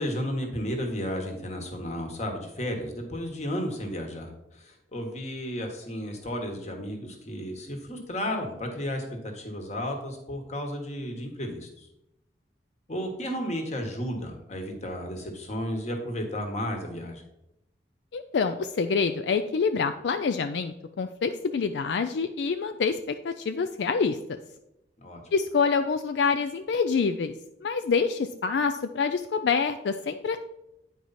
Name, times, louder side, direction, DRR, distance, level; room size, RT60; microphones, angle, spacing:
voice 1, 0.0-11.9 12.9-17.2 25.0-25.2, equal, 40° left, 3 dB, 1.4 m, -33 dB
voice 2, 18.1-24.2 25.3-27.3 27.6-30.4, left 5 dB, 75° left, 8 dB, 0.4 m, -26 dB
9.2 x 4.7 x 4.1 m, 0.87 s
head